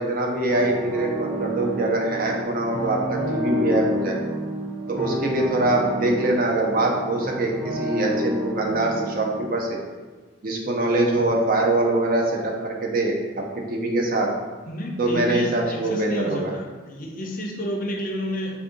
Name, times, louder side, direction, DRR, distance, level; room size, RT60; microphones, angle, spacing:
voice 1, 0.0-4.2 4.9-9.8 10.4-14.3 15.0-16.5, right 2 dB, 45° right, 0 dB, 0.5 m, -23 dB
sound 1, 0.5-9.4, left 1 dB, ahead, 0.7 m, -29 dB
voice 2, 14.7-18.6, equal, 45° left, -1 dB, 0.6 m, -30 dB
3.4 x 2.6 x 3.7 m, 1.4 s
head